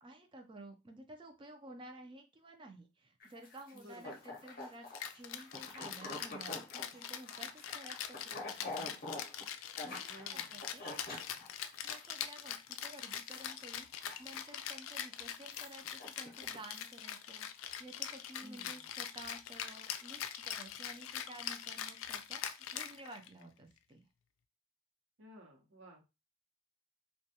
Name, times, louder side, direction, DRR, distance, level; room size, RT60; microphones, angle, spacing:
voice 1, 0.0-4.9 5.2-10.9 11.8-24.1, right 1 dB, 25° right, 5 dB, 0.4 m, -53 dB
sound 1, 3.2-12.1 12.5-12.7 13.0-13.5 13.8-14.8 15.2-16.9, left 2 dB, 45° left, 0.6 m, -47 dB
voice 2, 3.7-4.2 10.1-10.5 18.4-18.9 25.2-26.0, equal, 75° right, -1 dB, 0.8 m, -55 dB
Rattle (instrument), 4.9-23.4, left 9 dB, 90° left, 0.3 m, -43 dB
2.2 x 2.2 x 2.7 m, 0.26 s
head